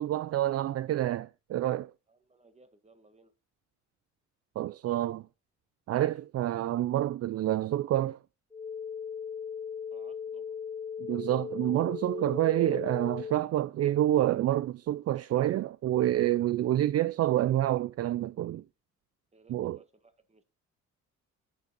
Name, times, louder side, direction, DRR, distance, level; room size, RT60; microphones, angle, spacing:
voice 1, 0.0-1.9 4.6-5.2 5.9-8.2 11.0-18.6 19.5-19.8, right 13 dB, 55° right, 0.4 m, -28 dB
voice 2, 2.1-3.3 9.9-10.6 19.3-20.4, right 3 dB, 20° right, 1.7 m, -61 dB
sound 1, 8.5-13.5, left 7 dB, 15° left, 1.2 m, -38 dB
10.5 x 7.2 x 4.3 m
cardioid pair, 90°, 30 cm